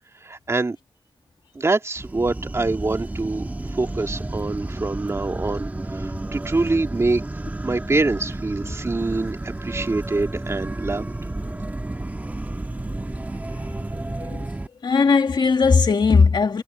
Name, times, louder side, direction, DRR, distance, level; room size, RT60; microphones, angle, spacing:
voice 1, 0.2-0.8 1.5-3.5 3.8-7.2 7.6-11.1, right 3 dB, 35° right, 2.2 m, -25 dB
sound 1, 2.0-14.7, right 2 dB, 20° right, 1.5 m, -31 dB
voice 2, 14.1-14.5 14.8-16.6, left 5 dB, 65° left, 1.9 m, -18 dB
wide cardioid pair, 125°, 8 cm